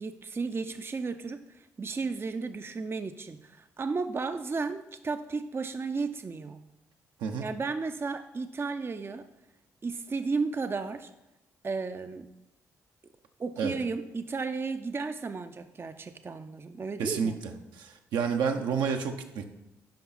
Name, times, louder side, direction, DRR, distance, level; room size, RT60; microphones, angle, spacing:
voice 1, 0.0-6.6 7.4-9.3 9.8-11.1 11.6-12.3 13.4-17.3, right 4 dB, 30° right, 9 dB, 0.6 m, -34 dB
voice 2, 17.0-17.3 17.8-19.4, right 6 dB, 70° right, 4 dB, 0.8 m, -29 dB
10.5 x 5.4 x 4.1 m, 0.94 s
hypercardioid pair, 45°, 8 cm